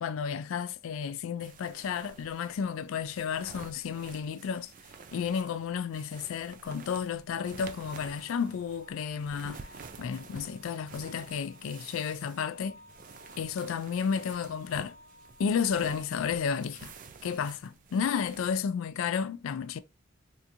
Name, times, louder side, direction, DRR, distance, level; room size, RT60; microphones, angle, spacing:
voice 1, 0.0-4.7 5.1-9.7 10.0-12.8 13.4-15.0 15.4-16.9 17.2-19.8, left 6 dB, 70° left, 0.3 m, -32 dB
sound 1, 1.4-18.6, right 5 dB, 40° right, 0.3 m, -50 dB
sound 2, 7.2-16.2, left 1 dB, 35° left, 1.2 m, -55 dB
3.4 x 2.8 x 2.6 m
head